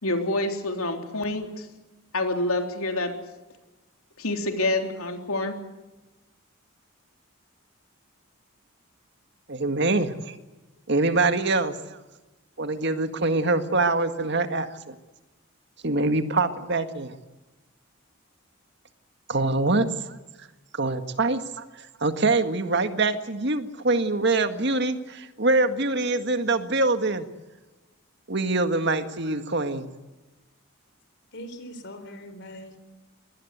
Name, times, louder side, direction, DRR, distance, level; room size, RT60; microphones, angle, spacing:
voice 1, 0.0-1.7 2.1-3.1 4.2-5.5, left 2 dB, 90° left, 5 dB, 3.5 m, -27 dB
voice 2, 9.5-10.4 10.9-11.8 12.6-14.9 15.8-17.2 19.3-20.2 20.7-27.3 28.3-29.9, right 2 dB, 55° right, 9 dB, 1.8 m, -24 dB
voice 3, 31.3-32.8, equal, 55° left, 10 dB, 3.7 m, -41 dB
23.5 x 19.0 x 8.2 m, 1.1 s
head